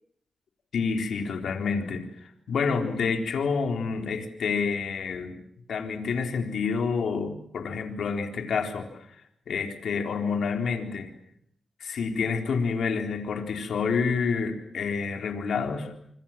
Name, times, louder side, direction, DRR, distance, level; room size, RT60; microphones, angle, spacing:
voice 1, 0.7-5.4 5.7-9.2 9.5-11.1 11.8-15.9, left 5 dB, 80° left, 4 dB, 3.9 m, -28 dB
27.0 x 25.5 x 7.5 m, 0.70 s
cardioid pair, 70°, 0 cm